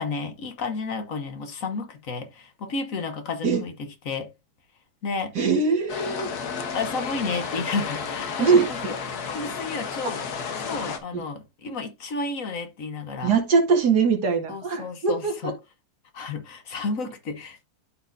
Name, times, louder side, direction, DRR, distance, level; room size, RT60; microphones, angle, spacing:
voice 1, 0.0-4.3 5.0-5.3 6.7-10.2 10.6-13.3 14.5-15.5 16.1-17.7, left 4 dB, 60° left, 1.4 m, -32 dB
voice 2, 5.4-6.3 8.4-8.7 13.2-15.5, right 5 dB, 80° right, 2.4 m, -21 dB
sound 1, 5.9-11.0, left 6 dB, 75° left, 1.6 m, -32 dB
12.5 x 4.4 x 2.6 m
omnidirectional pair, 1.7 m